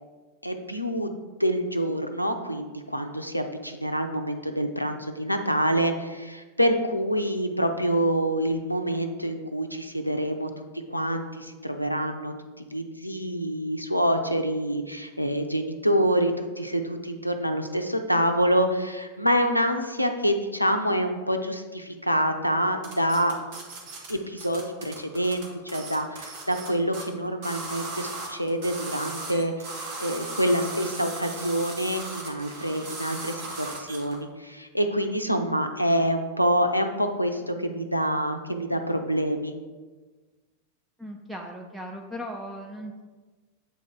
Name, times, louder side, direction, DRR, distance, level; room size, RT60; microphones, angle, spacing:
voice 1, 0.4-1.1 1.4-10.5 10.9-23.3 24.1-39.5, equal, 90° left, 6 dB, 0.5 m, -26 dB
sound 1, 22.8-24.1 24.4-26.7 26.9-27.0 27.4-34.2, right 3 dB, 45° right, 1.3 m, -37 dB
voice 2, 41.0-43.0, equal, 5° right, 1 dB, 0.5 m, -37 dB
7.6 x 4.1 x 3.6 m, 1.3 s
figure-of-eight pair, 90°, 0 cm